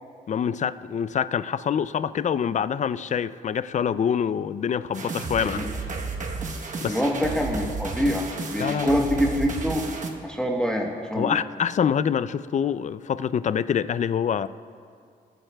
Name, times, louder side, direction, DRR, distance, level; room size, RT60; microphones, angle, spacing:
voice 1, 0.3-5.7 6.8-7.0 8.6-9.0 11.2-14.5, left 8 dB, 45° left, 16 dB, 0.4 m, -25 dB
sound 1, 4.9-10.1, right 4 dB, 45° right, 1.1 m, -32 dB
voice 2, 6.8-8.2 8.5-9.9 10.2-11.4, equal, 5° left, 0 dB, 1.1 m, -25 dB
21.5 x 8.9 x 2.3 m, 2.2 s
cardioid pair, 70°, 18 cm